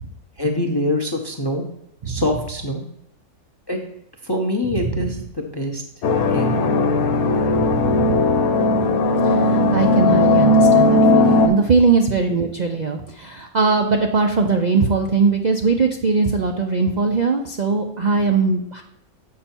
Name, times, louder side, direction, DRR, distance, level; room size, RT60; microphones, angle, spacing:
voice 1, 0.4-1.6 2.1-2.8 3.7-3.8 4.2-5.8 6.2-6.6, left 1 dB, 30° left, 2 dB, 0.4 m, -24 dB
voice 2, 4.7-5.1 7.3-8.1 9.2-18.8, right 4 dB, 85° right, 3 dB, 0.4 m, -20 dB
sound 1, 6.0-11.5, left 2 dB, 75° left, 1.2 m, -16 dB
7.4 x 5.5 x 4.4 m, 0.82 s
omnidirectional pair, 1.6 m